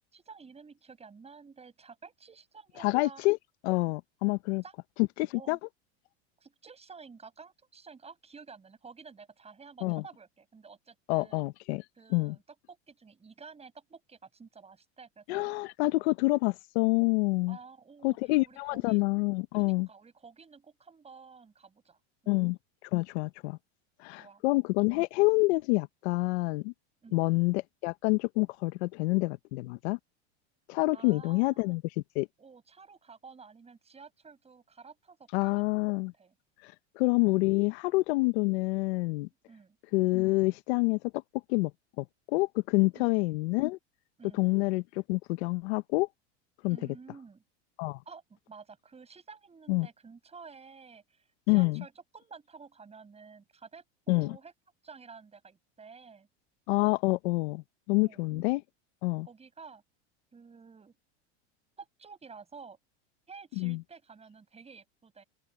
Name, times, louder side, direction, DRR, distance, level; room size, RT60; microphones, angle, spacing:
voice 1, 0.1-3.2 4.6-4.7 5.3-5.6 6.4-11.4 12.0-12.4 12.7-15.6 17.5-18.2 18.4-19.1 19.6-22.0 22.2-22.4 24.2-24.4 27.0-27.2 30.9-31.8 32.4-35.8 36.2-36.3 39.5-39.8 42.9-43.1 44.2-44.5 46.7-47.4 48.1-54.5 54.8-56.3 58.0-58.5 59.3-59.8 60.3-61.0 61.8-62.8 63.3-65.2, right 5 dB, 20° right, 7.9 m, -51 dB
voice 2, 2.8-3.4 3.6-4.6 5.2-5.6 9.8-10.0 11.1-11.8 12.1-12.3 15.3-17.6 18.0-19.9 22.3-22.6 22.9-23.6 24.0-26.7 27.1-30.0 30.7-31.8 32.1-32.3 35.3-36.1 36.6-39.3 39.9-41.0 41.5-41.7 42.0-43.8 44.3-44.8 45.1-46.1 46.6-46.8 47.8-48.0 49.7-49.9 51.5-51.8 54.1-54.4 56.7-58.6 59.0-59.3 63.6-63.8, left 24 dB, 65° left, 1.2 m, -27 dB
open air
supercardioid pair, 120°, 34 cm